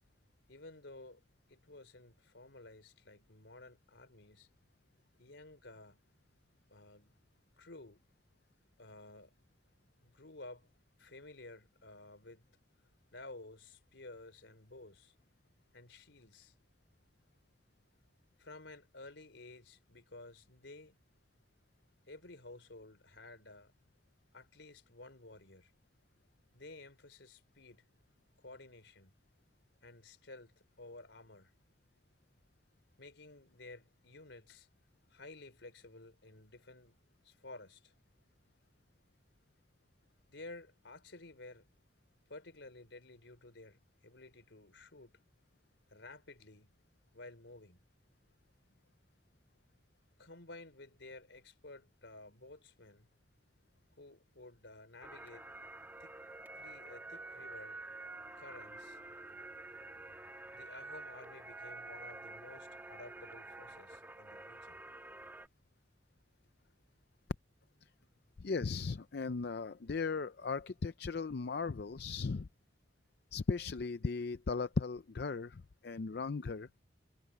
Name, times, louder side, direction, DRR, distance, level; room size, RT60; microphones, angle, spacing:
voice 1, 0.5-1.2 1.5-4.5 5.2-6.0 6.7-7.1 7.6-8.0 8.8-9.4 10.0-10.7 11.0-12.5 13.1-15.2 15.7-16.5 18.4-21.0 22.1-23.7 24.3-25.7 26.5-27.9 28.4-29.1 29.8-31.5 33.0-34.7 35.1-37.0 37.2-37.9 40.3-41.7 42.3-45.2 45.9-46.8 47.1-47.8 50.2-53.1 54.0-55.5 56.0-56.1 56.6-57.8 58.4-59.0 60.5-64.9, left 2 dB, 75° left, 3.6 m, -53 dB
sound 1, 55.0-65.5, right 2 dB, 10° right, 2.0 m, -49 dB
voice 2, 68.4-72.5 73.3-76.7, left 4 dB, 60° left, 0.5 m, -37 dB
head